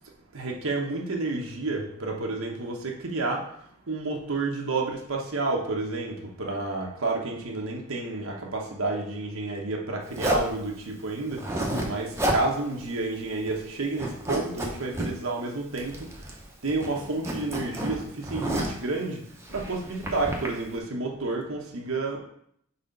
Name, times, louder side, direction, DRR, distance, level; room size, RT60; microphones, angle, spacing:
voice 1, 0.3-3.4 3.9-16.1 16.6-19.2 19.5-22.2, right 3 dB, 80° right, 0 dB, 1.1 m, -30 dB
Zipper (clothing), 10.1-10.5 11.3-11.9 12.1-12.4 12.8-12.9 13.2-13.7 13.9-15.1 15.8-16.4 16.7-18.8 19.4-20.5, right 1 dB, 15° right, 0.8 m, -30 dB
4.3 x 4.2 x 5.2 m, 0.69 s
head